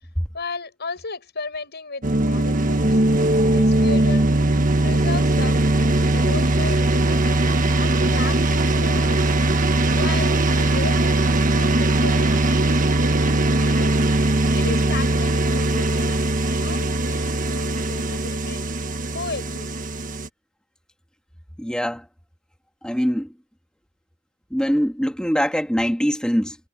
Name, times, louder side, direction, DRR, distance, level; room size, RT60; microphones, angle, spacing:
voice 1, 0.3-3.0 3.5-4.3 4.8-5.6 6.1-7.5 7.8-9.3 9.9-11.3 11.6-12.8 13.6-14.0 14.5-16.3 16.5-18.7 19.1-19.7, left 4 dB, 55° left, 7.6 m, -34 dB
sound 1, 2.0-20.3, right 2 dB, 40° right, 1.5 m, -20 dB
voice 2, 21.6-22.1 22.8-23.3 24.5-26.6, equal, 5° left, 2.6 m, -23 dB
head